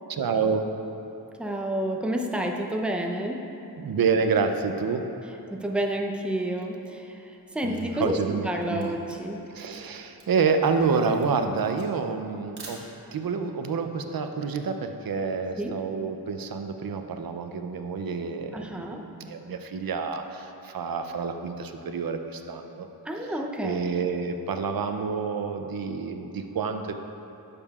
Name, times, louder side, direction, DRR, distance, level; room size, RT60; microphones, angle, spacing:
voice 1, 0.1-0.7 3.8-5.0 7.6-8.9 9.5-12.8 13.1-22.9 23.2-23.3 23.6-26.9, right 5 dB, 60° right, 7 dB, 0.6 m, -28 dB
voice 2, 1.4-3.4 5.5-8.2 8.4-9.5 15.6-15.8 18.5-19.0 23.0-23.8, right 1 dB, 5° right, 1 dB, 0.6 m, -30 dB
Camera, 7.4-13.3, right 3 dB, 80° right, 1.2 m, -49 dB
10.5 x 6.8 x 2.4 m, 3.0 s
wide cardioid pair, 65°, 39 cm